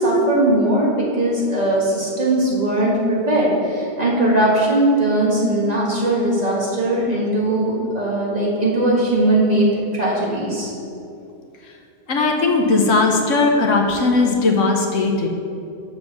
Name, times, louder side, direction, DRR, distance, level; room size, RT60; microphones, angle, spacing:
voice 1, 0.0-9.7 9.9-10.7, right 1 dB, 30° right, -5 dB, 1.4 m, -19 dB
voice 2, 12.1-15.3, left 3 dB, 70° left, 2 dB, 1.1 m, -18 dB
6.8 x 4.5 x 6.5 m, 2.6 s
omnidirectional pair, 1.4 m